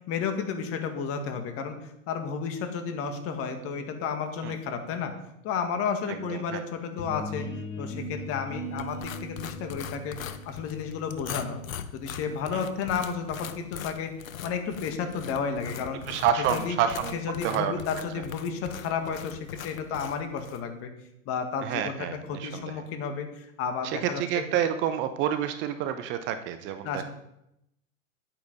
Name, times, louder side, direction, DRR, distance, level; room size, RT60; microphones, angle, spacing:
voice 1, 0.0-1.8 2.1-5.1 5.4-7.5 7.8-11.6 11.9-14.1 14.4-16.0 16.5-16.8 17.1-19.4 19.6-20.9 21.3-21.9 22.3-24.4 26.8-27.0, left 6 dB, 35° left, 6 dB, 1.7 m, -32 dB
voice 2, 6.1-6.6 12.5-12.6 16.1-17.2 17.4-17.8 18.1-18.2 21.6-22.8 23.8-27.0, right 9 dB, 30° right, 10 dB, 0.6 m, -29 dB
sound 1, 7.0-12.6, left 1 dB, 60° left, 2.6 m, -39 dB
sound 2, 8.8-20.6, left 9 dB, 75° left, 0.9 m, -41 dB
10.0 x 8.7 x 4.0 m, 0.81 s
hypercardioid pair, 115°, 41 cm